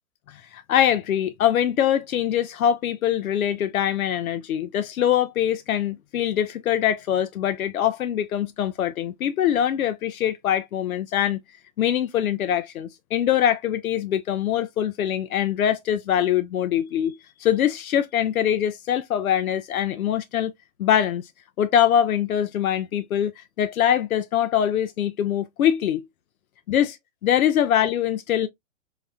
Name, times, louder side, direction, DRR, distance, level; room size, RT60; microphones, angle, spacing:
voice 1, 0.3-11.4 11.8-17.1 17.4-20.5 20.8-21.3 21.6-26.0 26.7-27.0 27.2-28.5, left 10 dB, 90° left, 0.5 m, -23 dB
4.0 x 2.1 x 2.3 m
hypercardioid pair, 125°, 41 cm